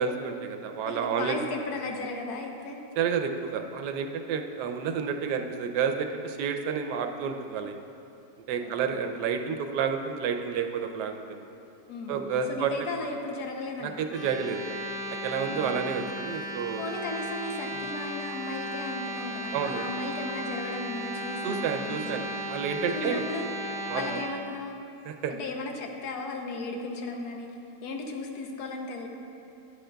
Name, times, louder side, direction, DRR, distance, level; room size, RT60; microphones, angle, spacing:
voice 1, 0.0-1.4 3.0-7.8 8.5-11.4 12.1-12.7 13.8-14.6 15.2-17.0 17.7-17.9 19.5-19.9 21.4-23.2 23.9-24.2 25.1-25.3, right 6 dB, 85° right, 5 dB, 1.2 m, -30 dB
voice 2, 0.8-2.8 8.6-9.2 11.9-13.9 15.5-15.8 16.8-22.4 22.9-23.5 23.9-24.8 25.3-27.5 27.8-29.1, left 3 dB, 70° left, 2 dB, 1.3 m, -36 dB
sound 1, 14.1-24.2, equal, 90° left, 2.1 m, -36 dB
10.0 x 9.5 x 2.2 m, 2.7 s
omnidirectional pair, 1.8 m